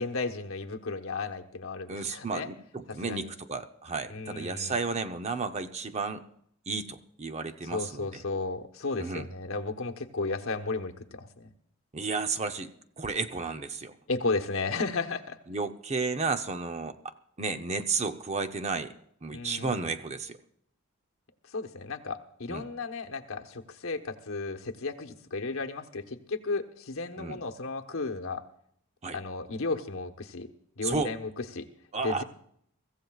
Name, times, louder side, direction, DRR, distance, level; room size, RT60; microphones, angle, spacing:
voice 1, 0.0-2.5 3.0-3.3 4.1-4.8 7.7-11.5 14.1-15.4 19.3-19.9 21.5-28.4 29.1-30.5 30.8-31.7 32.0-32.2, left 3 dB, 65° left, 6 dB, 1.1 m, -34 dB
voice 2, 1.9-6.2 6.7-8.1 9.0-9.3 11.9-12.7 13.0-13.9 15.5-17.0 17.4-18.9 19.2-20.4 22.5-22.7 27.2-27.4 29.0-29.2 30.8-31.1 31.9-32.2, right 4 dB, 30° right, 8 dB, 0.7 m, -32 dB
24.0 x 15.0 x 2.4 m, 0.67 s
head